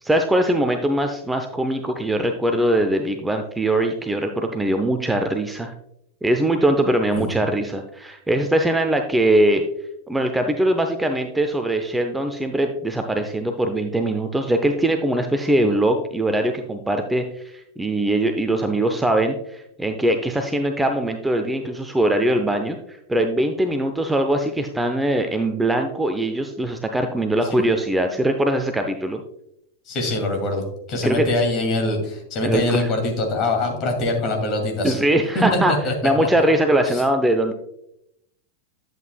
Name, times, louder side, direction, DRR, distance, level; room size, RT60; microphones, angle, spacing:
voice 1, 0.0-5.7 6.2-9.6 10.1-22.8 23.1-29.2 31.0-31.3 32.4-32.9 34.8-35.7 36.0-37.5, right 1 dB, 5° right, 5 dB, 0.6 m, -21 dB
voice 2, 29.9-30.6 30.9-35.0 35.3-35.6 35.8-35.9 36.2-36.3 36.9-37.0, left 2 dB, 35° left, 3 dB, 2.3 m, -23 dB
10.5 x 7.9 x 2.2 m, 0.79 s
figure-of-eight pair, 90°, 0 cm